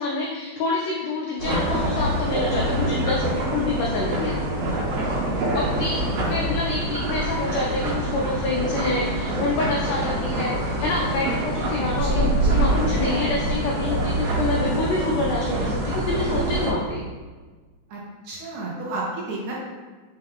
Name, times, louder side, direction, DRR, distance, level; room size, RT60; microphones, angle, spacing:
voice 1, 0.0-4.4 5.5-6.0 6.3-17.0, left 3 dB, 90° left, -3 dB, 1.5 m, -27 dB
sound 1, 1.4-16.7, right 1 dB, 90° right, 2.5 m, -25 dB
voice 2, 4.9-5.5 6.1-6.3 11.8-12.7 17.9-19.5, right 1 dB, 75° right, -4 dB, 1.8 m, -32 dB
5.5 x 2.3 x 3.5 m, 1.4 s
omnidirectional pair, 3.6 m